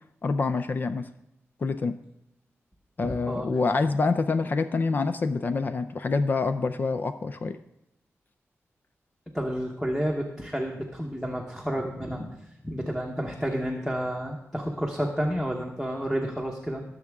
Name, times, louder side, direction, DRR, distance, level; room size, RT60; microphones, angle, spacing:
voice 1, 0.2-1.1 1.6-2.0 3.0-7.6, left 4 dB, 40° left, 9 dB, 0.4 m, -26 dB
voice 2, 3.0-3.5 9.3-12.4 12.6-16.8, equal, ahead, -1 dB, 1.0 m, -30 dB
18.5 x 7.2 x 3.5 m, 0.86 s
wide cardioid pair, 160°, 5 cm